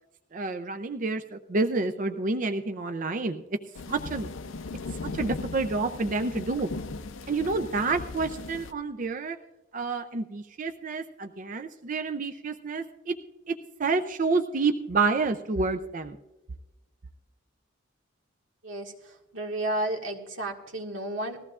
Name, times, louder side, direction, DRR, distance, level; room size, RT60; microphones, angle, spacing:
voice 1, 0.3-3.4 3.9-4.3 5.1-6.7 7.3-9.4 9.7-13.1 13.5-16.2, right 3 dB, 40° right, 7 dB, 0.5 m, -29 dB
sound 1, 3.8-8.7, left 3 dB, 80° left, 0.6 m, -38 dB
voice 2, 19.3-21.4, right 1 dB, 85° right, 2 dB, 1.8 m, -32 dB
19.5 x 14.5 x 2.4 m, 1.1 s
head